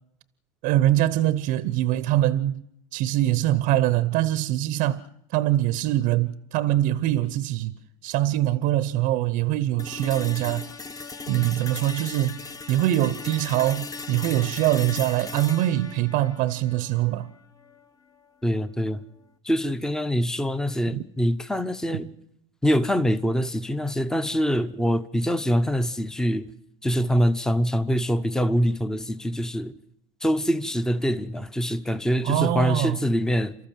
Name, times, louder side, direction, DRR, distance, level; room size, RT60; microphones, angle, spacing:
voice 1, 0.6-2.6 2.9-5.1 5.3-7.7 8.0-10.7 11.3-17.3 20.9-21.0 21.9-22.0 32.2-33.0, right 14 dB, 55° right, 0.9 m, -23 dB
sound 1, 9.8-17.8, left 4 dB, 20° left, 1.2 m, -38 dB
voice 2, 18.4-19.0 19.4-22.1 22.6-26.5 26.8-29.7 30.2-33.5, equal, 5° left, 0.9 m, -24 dB
29.5 x 13.5 x 7.6 m
supercardioid pair, 120°, 17 cm